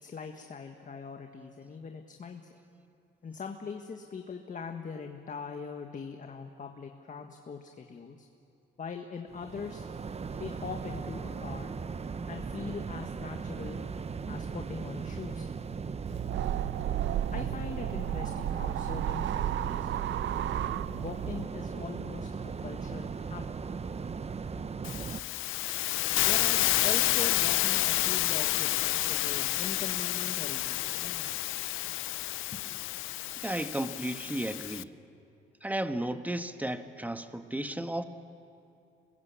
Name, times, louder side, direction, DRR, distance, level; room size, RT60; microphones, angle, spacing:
voice 1, 0.0-2.4 3.2-8.3 8.8-9.9 10.4-11.7 12.3-13.8 14.3-15.5 17.3-19.9 20.9-23.5 26.2-31.3 32.5-32.6, left 5 dB, 40° left, 4 dB, 1.6 m, -41 dB
sound 1, 9.3-25.2, right 5 dB, 30° right, 0.9 m, -38 dB
sound 2, 16.1-21.5, right 12 dB, 70° right, 0.6 m, -33 dB
Hiss, 24.8-34.8, left 16 dB, 90° left, 0.5 m, -29 dB
voice 2, 33.4-34.9 35.6-38.0, right 1 dB, 10° right, 8 dB, 1.3 m, -34 dB
26.5 x 21.5 x 8.5 m, 2.7 s
cardioid pair, 90°, 20 cm